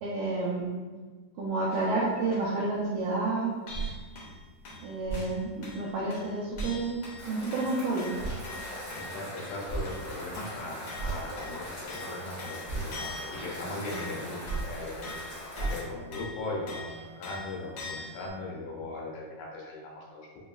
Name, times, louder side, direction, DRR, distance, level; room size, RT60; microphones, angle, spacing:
voice 1, 0.0-0.7 1.4-3.5 4.8-7.0 7.3-8.1, right 3 dB, 80° right, -5 dB, 1.8 m, -30 dB
sound 1, 1.7-2.4 3.0-3.1 3.3-3.4 3.7-18.3, left 2 dB, 65° left, 1.5 m, -44 dB
sound 2, 3.7-4.0 5.0-5.3 6.5-6.7 8.2-8.4 9.6-9.9 10.9-11.4 12.6-12.9 14.4-14.7 15.5-15.9, right 3 dB, 55° right, 0.7 m, -34 dB
sound 3, 7.2-15.8, left 1 dB, 40° left, 1.6 m, -42 dB
voice 2, 8.9-20.4, left 2 dB, 80° left, -3 dB, 2.4 m, -39 dB
5.3 x 3.0 x 2.3 m, 1.4 s
omnidirectional pair, 3.7 m